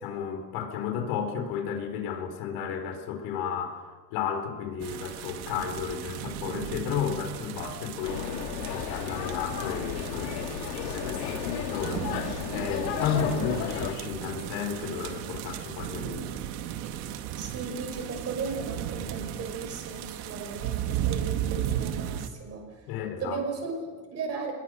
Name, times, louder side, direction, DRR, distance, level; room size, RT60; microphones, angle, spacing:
voice 1, 0.0-3.9 4.1-8.3 8.6-12.2 12.5-16.4 22.9-23.4, left 7 dB, 55° left, 5 dB, 4.4 m, -33 dB
sound 1, 4.8-22.3, right 11 dB, 60° right, 2.2 m, -35 dB
sound 2, 8.0-13.9, left 9 dB, 90° left, 2.6 m, -33 dB
voice 2, 17.3-22.7 23.2-24.5, right 4 dB, 30° right, 4 dB, 6.1 m, -36 dB
27.0 x 21.5 x 6.4 m, 1.4 s
supercardioid pair, 155°, 50 cm